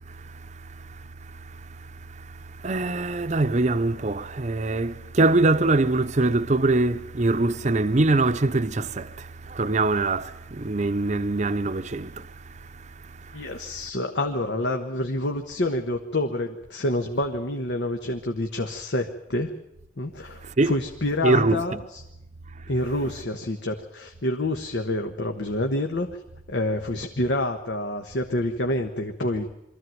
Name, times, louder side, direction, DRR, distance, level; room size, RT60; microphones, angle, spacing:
voice 1, 0.1-13.5 20.4-20.7 21.2-21.6 22.6-22.7, right 2 dB, 40° right, 0.7 m, -24 dB
voice 2, 13.3-19.6 20.0-22.0 22.7-26.1 26.5-29.5, left 1 dB, 75° left, 1.3 m, -27 dB
23.5 x 14.5 x 9.3 m
head